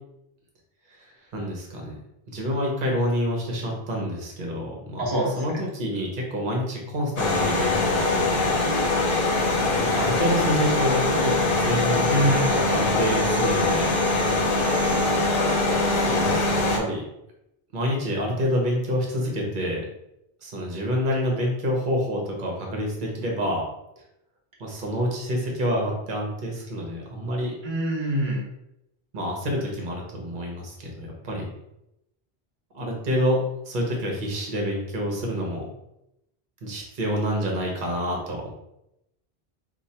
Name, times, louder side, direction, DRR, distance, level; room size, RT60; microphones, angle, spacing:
voice 1, 0.9-2.0 2.3-5.0 5.4-8.5 9.8-13.9 15.9-17.0 17.7-19.8 20.4-23.6 24.6-27.5 29.1-31.4 32.7-35.7 36.6-38.5, equal, 55° right, -1 dB, 1.0 m, -27 dB
voice 2, 5.0-5.3 12.0-12.4 27.6-28.4, right 1 dB, 30° right, -4 dB, 0.8 m, -24 dB
sound 1, 7.2-16.8, left 2 dB, 65° left, 0.8 m, -22 dB
3.0 x 2.3 x 4.2 m, 0.85 s
omnidirectional pair, 1.0 m